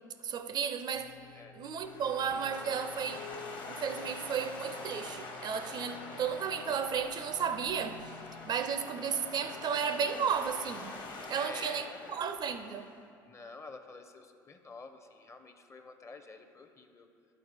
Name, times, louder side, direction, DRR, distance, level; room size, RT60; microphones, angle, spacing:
voice 1, 0.2-3.3 3.7-8.0 8.5-11.0 11.3-12.9, right 7 dB, 40° right, 0.4 m, -34 dB
sound 1, 0.9-12.3, left 7 dB, 75° left, 0.4 m, -54 dB
sound 2, 1.8-13.0, left 3 dB, 45° left, 1.1 m, -45 dB
voice 2, 11.3-12.2 13.2-17.1, left 3 dB, 25° left, 0.6 m, -48 dB
9.8 x 4.2 x 4.1 m
hypercardioid pair, 65°, 11 cm